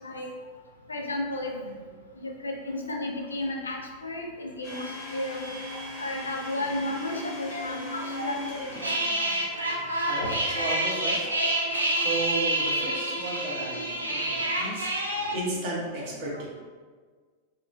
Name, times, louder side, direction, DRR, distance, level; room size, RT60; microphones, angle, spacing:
voice 1, 0.9-1.8 2.2-4.8 5.1-5.5 6.0-8.6 10.2-10.7 11.2-11.3 15.5-15.6 16.0-16.3, left 1 dB, 75° left, 2 dB, 0.4 m, -33 dB
Domestic sounds home sounds, 4.6-10.1, left 2 dB, 45° left, 0.7 m, -39 dB
sound 1, 8.7-15.3, right 1 dB, 80° right, 0.3 m, -28 dB
voice 2, 10.1-11.3 12.0-16.5, right 2 dB, 45° right, -4 dB, 0.7 m, -34 dB
2.9 x 2.1 x 2.3 m, 1.5 s
figure-of-eight pair, 90°, 0 cm